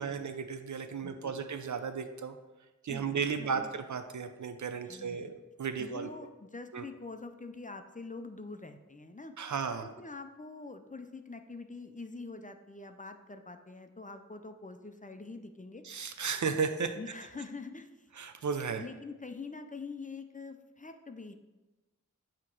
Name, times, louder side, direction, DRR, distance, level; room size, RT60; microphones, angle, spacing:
voice 1, 0.0-2.4 2.8-6.1 6.7-6.9 9.4-9.9 15.8-17.0 18.2-18.8, right 6 dB, 65° right, 9 dB, 0.5 m, -34 dB
voice 2, 1.0-1.4 2.9-3.7 4.8-5.4 5.8-9.3 9.8-15.8 16.2-16.3 16.9-18.1 18.8-21.3, left 3 dB, 25° left, 7 dB, 0.5 m, -45 dB
8.4 x 3.0 x 4.6 m, 1.1 s
wide cardioid pair, 50°, 31 cm